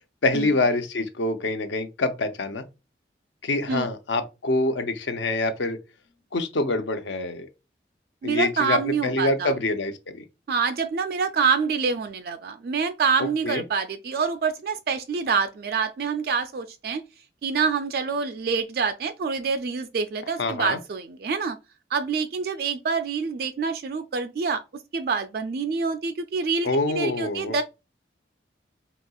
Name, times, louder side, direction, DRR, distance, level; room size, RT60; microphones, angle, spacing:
voice 1, 0.2-2.6 3.4-5.8 6.3-7.5 8.2-10.2 13.4-13.6 20.4-20.8 26.6-27.6, left 2 dB, 80° left, 0.6 m, -25 dB
voice 2, 8.2-9.5 10.5-17.0 17.4-21.6 21.9-24.6 24.9-27.6, right 5 dB, 55° right, 0.3 m, -26 dB
4.2 x 2.8 x 2.3 m
head